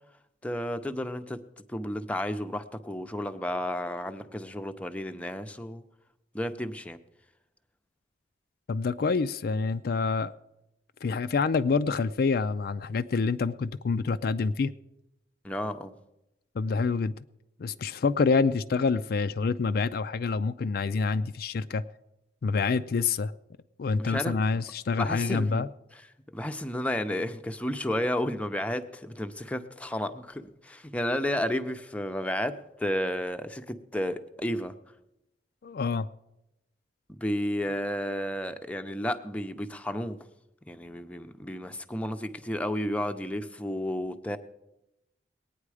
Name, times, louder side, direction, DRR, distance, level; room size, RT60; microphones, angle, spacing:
voice 1, 0.4-1.4 1.7-5.8 6.3-7.0 15.4-15.9 24.0-24.6 25.0-25.6 25.9-26.0 26.3-34.7 37.1-40.2 40.7-44.4, left 1 dB, 10° left, 0.6 m, -32 dB
voice 2, 8.7-10.3 11.0-14.7 16.6-17.1 17.6-21.8 22.4-23.3 23.8-25.7 35.6-36.1, left 4 dB, 55° left, 0.4 m, -27 dB
20.5 x 9.3 x 4.9 m
head